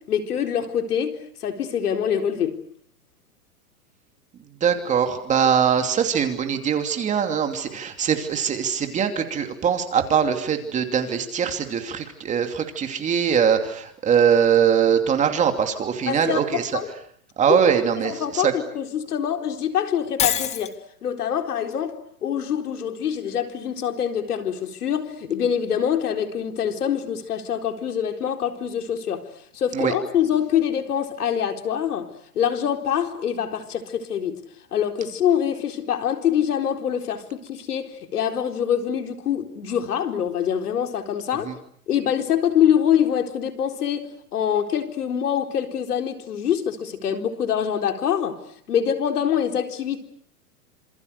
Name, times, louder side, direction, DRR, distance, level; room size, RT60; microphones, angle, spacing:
voice 1, 0.1-2.6 16.1-16.9 17.5-17.6 18.0-20.8 21.0-29.2 29.5-34.4 34.7-41.5 41.9-48.4 48.7-50.0, left 9 dB, 75° left, 4.2 m, -25 dB
voice 2, 4.6-16.8 17.4-18.5 29.7-29.9 41.4-41.5, right 7 dB, 15° right, 2.7 m, -22 dB
Shatter, 20.2-20.7, left 9 dB, 15° left, 1.1 m, -24 dB
28.0 x 27.5 x 6.7 m
hypercardioid pair, 150°, 45 cm